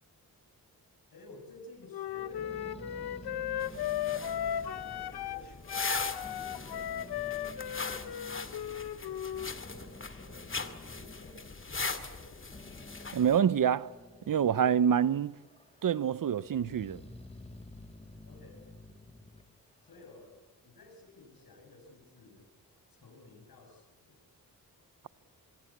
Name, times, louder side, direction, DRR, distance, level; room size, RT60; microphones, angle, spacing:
voice 1, 1.1-5.5 6.3-8.9 9.6-12.8 18.3-18.7 19.8-20.4 20.6-22.5 22.9-24.2, left 2 dB, 70° left, 7.3 m, -55 dB
Wind instrument woodwind instrument, 1.9-5.4 5.7-9.5, left 10 dB, 90° left, 1.0 m, -36 dB
Growling, 2.2-5.9 6.2-8.6 9.1-14.9 15.3-16.0 16.4-20.2, left 2 dB, 15° left, 2.4 m, -51 dB
sound 1, 3.6-13.4, left 4 dB, 35° left, 2.3 m, -40 dB
voice 2, 13.1-13.9 14.3-15.3 15.8-17.0, right 8 dB, 60° right, 0.8 m, -26 dB
25.5 x 22.5 x 8.6 m
cardioid pair, 65°, 37 cm